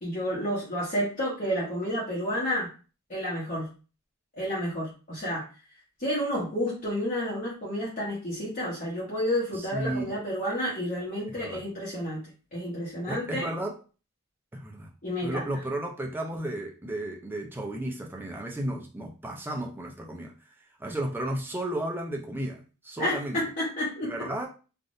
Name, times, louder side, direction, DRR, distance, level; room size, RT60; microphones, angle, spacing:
voice 1, 0.0-2.7 3.1-3.7 4.4-5.4 6.0-12.2 12.5-13.5 15.0-15.5 23.0-24.3, equal, 40° left, -7 dB, 1.1 m, -30 dB
voice 2, 9.6-10.2 11.3-11.6 13.1-13.8 14.5-14.9 15.2-20.3 20.8-23.4 24.0-24.5, right 1 dB, 10° right, 1 dB, 0.5 m, -33 dB
3.3 x 2.5 x 2.6 m, 0.34 s
head